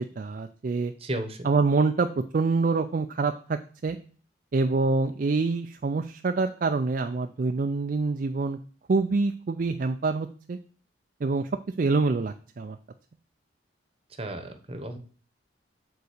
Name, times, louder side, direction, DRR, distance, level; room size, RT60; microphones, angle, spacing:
voice 1, 0.0-0.9 1.4-4.0 4.5-8.6 8.9-10.6 11.2-11.5 11.8-12.8, right 3 dB, 45° right, 7 dB, 0.4 m, -26 dB
voice 2, 1.0-1.5 14.2-15.0, right 1 dB, 30° right, 7 dB, 0.9 m, -34 dB
6.9 x 4.1 x 6.5 m, 0.42 s
head